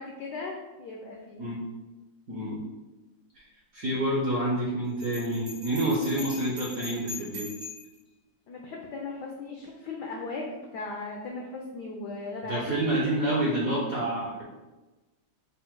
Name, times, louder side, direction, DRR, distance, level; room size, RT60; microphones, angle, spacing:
voice 1, 0.0-1.5 6.1-6.2 8.5-12.7, left 3 dB, 80° left, 0 dB, 0.9 m, -37 dB
voice 2, 2.3-2.6 3.4-3.5 3.7-7.5 12.4-14.4, right 1 dB, 60° right, -4 dB, 0.9 m, -28 dB
Bell, 5.0-8.0, left 3 dB, 90° right, 2.5 m, -41 dB
5.4 x 2.0 x 4.5 m, 1.1 s
omnidirectional pair, 2.4 m